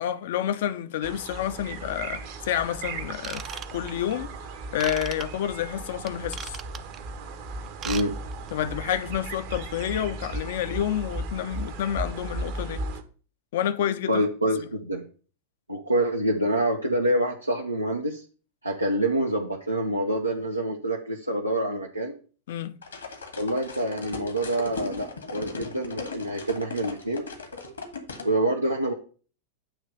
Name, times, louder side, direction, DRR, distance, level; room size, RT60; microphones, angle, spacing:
voice 1, 0.0-4.4 4.7-6.6 8.5-12.8 13.5-14.2 14.6-14.7 22.5-22.7, left 10 dB, 55° left, 0.6 m, -29 dB
sound 1, 1.0-13.0, right 2 dB, 50° right, 1.0 m, -36 dB
Ratchet pawl / Tools, 3.2-4.1 4.8-5.2 6.1-7.0 7.7-8.1 8.3-8.5 9.0-9.1, right 8 dB, 30° right, 0.5 m, -37 dB
voice 2, 7.8-8.1 14.1-15.0 15.7-18.2 18.6-22.1 23.4-27.2 28.2-28.9, right 1 dB, 85° right, 0.8 m, -26 dB
sound 2, 22.8-28.3, left 3 dB, 75° left, 1.8 m, -38 dB
8.7 x 3.1 x 6.4 m
figure-of-eight pair, 90°, 0 cm